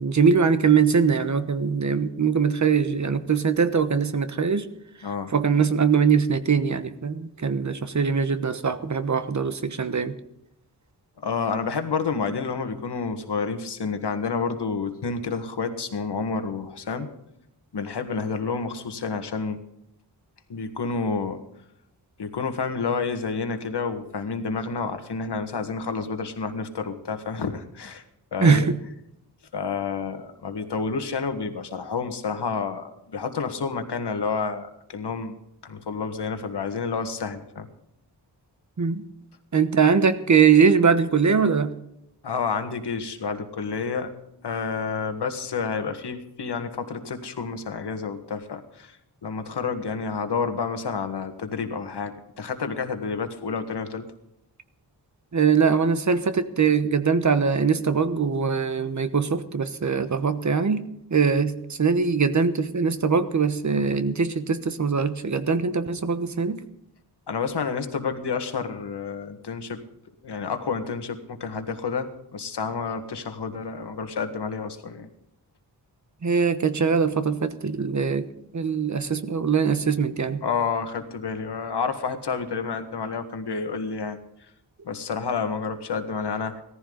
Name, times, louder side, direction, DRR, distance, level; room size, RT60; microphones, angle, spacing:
voice 1, 0.0-4.7 5.3-10.1 28.4-28.8 38.8-39.0 39.5-41.7 55.3-66.6 76.2-78.3 78.5-80.4, right 5 dB, 45° right, 11 dB, 1.2 m, -22 dB
voice 2, 11.2-17.1 17.7-19.6 20.5-21.4 22.2-28.0 28.3-28.7 29.5-35.4 35.6-37.7 42.2-44.1 44.4-49.0 49.2-54.1 67.3-69.8 70.2-75.1 80.4-84.2 84.8-86.6, left 5 dB, 75° left, 7 dB, 1.8 m, -29 dB
17.5 x 14.5 x 4.0 m, 0.80 s
wide cardioid pair, 125°, 41 cm